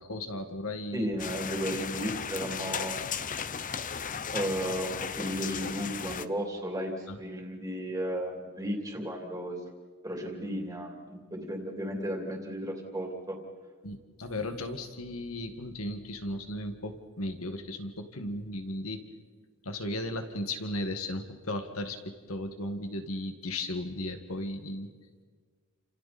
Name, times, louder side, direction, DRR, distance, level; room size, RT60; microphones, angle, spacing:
voice 1, 0.0-1.1 7.1-7.2 13.8-19.0 19.6-24.9, left 1 dB, 80° left, 7 dB, 2.0 m, -36 dB
voice 2, 0.9-3.0 4.3-9.6 10.0-13.4, equal, 15° right, 1 dB, 3.2 m, -34 dB
sound 1, 1.2-6.3, left 6 dB, 40° left, 0.7 m, -35 dB
30.0 x 28.0 x 4.4 m, 1.5 s
head